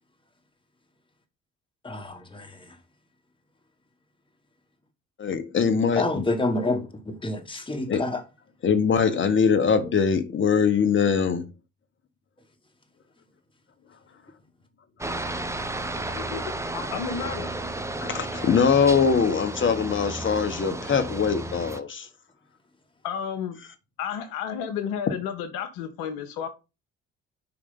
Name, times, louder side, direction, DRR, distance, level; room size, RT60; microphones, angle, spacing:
voice 1, 1.8-2.7 6.0-8.2, left 2 dB, 15° left, 1.5 m, -28 dB
voice 2, 5.2-6.3 7.9-8.1 8.6-11.5 16.1-16.2 18.0-22.1, left 6 dB, 30° left, 1.3 m, -22 dB
Aircraft, 15.0-21.8, right 2 dB, 5° right, 0.8 m, -33 dB
voice 3, 16.7-17.5 23.0-23.6 24.0-26.5, left 8 dB, 65° left, 1.1 m, -32 dB
5.0 x 4.8 x 5.6 m
figure-of-eight pair, 45°, 38 cm